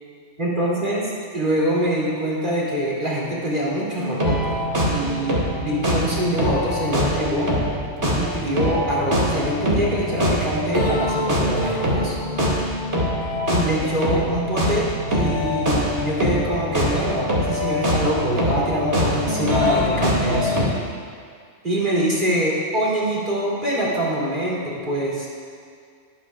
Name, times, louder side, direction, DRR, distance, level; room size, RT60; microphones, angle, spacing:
voice 1, 0.4-1.0 1.3-4.6 4.9-7.5 8.1-12.1 13.5-20.6 21.6-25.3, right 1 dB, 40° right, -6 dB, 3.3 m, -24 dB
sound 1, 4.0-20.7, equal, 65° right, 2.7 m, -23 dB
22.5 x 10.0 x 2.5 m, 2.1 s
omnidirectional pair, 1.3 m